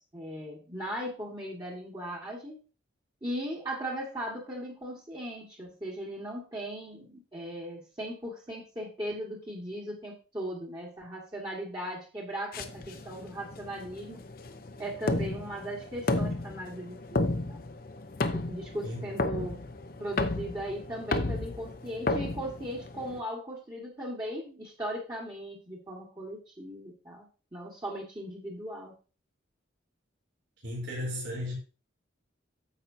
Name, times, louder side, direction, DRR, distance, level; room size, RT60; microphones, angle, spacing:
voice 1, 0.0-2.6 3.2-14.2 14.8-17.7 18.3-19.6 20.0-28.9, equal, 20° right, 1.7 m, -38 dB
sound 1, 12.5-23.2, left 2 dB, 50° left, 0.8 m, -33 dB
voice 2, 18.8-19.4 30.6-31.5, left 1 dB, 70° right, 3.8 m, -36 dB
9.8 x 7.4 x 2.7 m
head